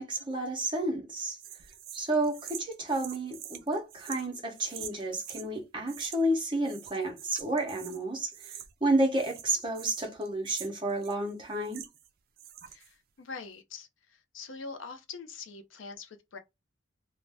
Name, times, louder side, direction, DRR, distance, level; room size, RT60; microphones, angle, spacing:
voice 1, 0.0-1.4 1.9-11.8, right 1 dB, 25° right, 0.7 m, -31 dB
sound 1, 1.4-5.5 5.9-6.4 6.6-8.0 8.3-8.9 9.1-12.1 12.4-12.9, right 10 dB, 45° right, 0.3 m, -45 dB
voice 2, 12.7-16.4, left 4 dB, 75° left, 0.5 m, -44 dB
2.5 x 2.1 x 3.2 m
head